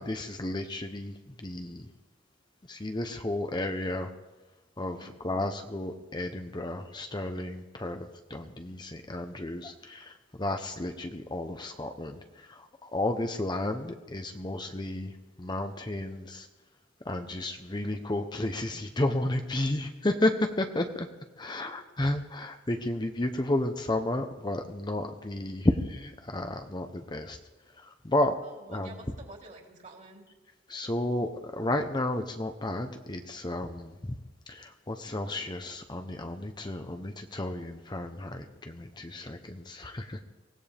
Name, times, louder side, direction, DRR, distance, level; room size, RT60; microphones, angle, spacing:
voice 1, 0.0-1.9 2.7-4.1 4.8-16.5 17.0-21.1 21.4-27.4 27.7-28.3 28.7-28.9 30.7-34.1 34.5-40.2, left 1 dB, 25° left, 6 dB, 0.8 m, -32 dB
voice 2, 21.4-21.8 28.4-30.2, right 2 dB, 40° right, 0 dB, 3.5 m, -50 dB
24.0 x 17.0 x 3.5 m, 1.2 s
head